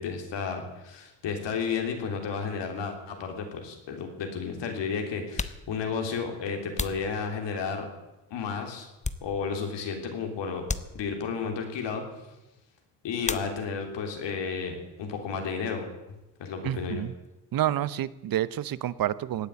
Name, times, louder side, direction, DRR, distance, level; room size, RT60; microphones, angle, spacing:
voice 1, 0.0-7.9 8.3-8.9 9.2-10.7 10.9-12.0 13.0-15.9 16.4-17.0, left 5 dB, 70° left, 4 dB, 3.5 m, -32 dB
sound 1, 5.3-7.8 8.4-9.7 10.0-10.2 10.6-11.5 13.2-14.0 14.3-15.0 15.2-17.4, left 4 dB, 15° left, 0.8 m, -38 dB
voice 2, 16.6-17.1 17.5-19.5, right 12 dB, 50° right, 18 dB, 0.8 m, -29 dB
17.5 x 9.4 x 8.3 m, 1.0 s
cardioid pair, 95°, 45 cm